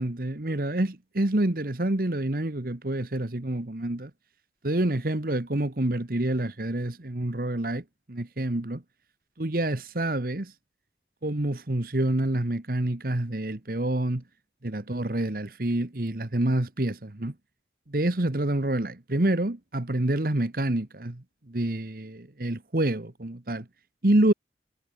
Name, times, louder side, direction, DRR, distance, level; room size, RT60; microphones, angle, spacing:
voice 1, 0.0-4.1 4.6-8.8 9.4-10.5 11.2-14.2 14.6-17.3 17.9-23.7 24.0-24.3, right 1 dB, 50° right, 1.4 m, -27 dB
head